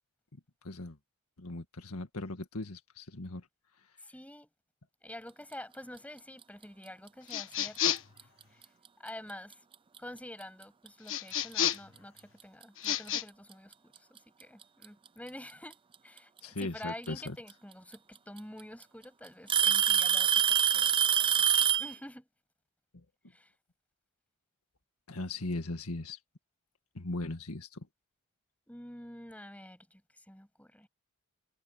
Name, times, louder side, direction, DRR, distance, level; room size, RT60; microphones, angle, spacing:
voice 1, 0.6-1.0 1.4-3.4 16.4-17.4 25.1-26.2 27.0-27.9, left 2 dB, 85° left, 1.8 m, -38 dB
voice 2, 4.0-4.5 5.0-8.0 8.5-8.6 9.0-9.6 10.0-20.9 21.2-21.4 21.8-22.3 23.3-23.5 28.7-30.9, left 1 dB, 5° left, 7.3 m, -48 dB
sound 1, 7.3-8.2 11.1-12.0 12.8-13.2, left 9 dB, 65° left, 1.4 m, -31 dB
Alarm / Tick-tock, 8.0-8.2 9.1-9.2 10.0-10.1 11.7-11.8 13.1-13.2 14.4-14.9 16.6-16.7 17.9-18.0 18.4-18.8 19.5-21.9, right 8 dB, 25° right, 0.4 m, -25 dB
head